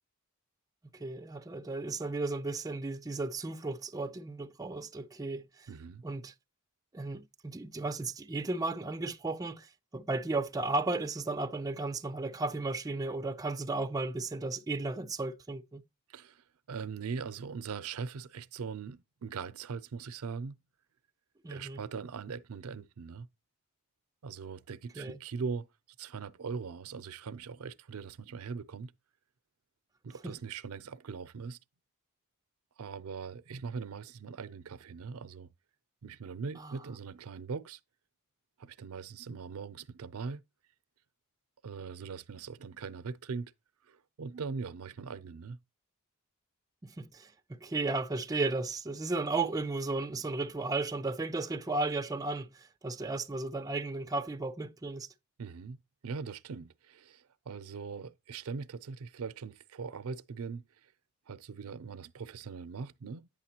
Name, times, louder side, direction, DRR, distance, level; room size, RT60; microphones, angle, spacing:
voice 1, 0.9-5.7 6.0-6.3 6.9-15.8 21.4-21.8 25.0-25.2 30.2-30.3 36.6-36.7 46.8-55.1, right 3 dB, 15° right, 0.4 m, -34 dB
voice 2, 5.7-6.0 16.1-20.6 21.5-23.3 24.2-25.7 26.0-28.9 30.0-31.6 32.8-35.5 36.0-37.8 38.6-40.4 41.6-43.5 43.8-45.6 55.4-55.8 56.0-60.9 61.3-63.3, right 5 dB, 80° right, 0.5 m, -41 dB
8.8 x 6.6 x 2.8 m
head